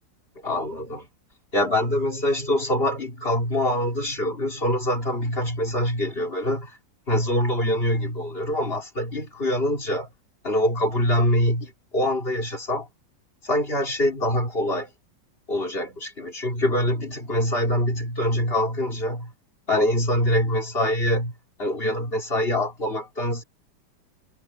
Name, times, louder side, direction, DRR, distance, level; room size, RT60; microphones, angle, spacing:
voice 1, 0.4-1.1 1.5-6.8 7.1-10.1 10.4-12.9 13.4-14.9 15.5-19.3 19.7-21.3 21.6-23.4, left 1 dB, 30° left, 3.9 m, -24 dB
omnidirectional pair, 2.0 m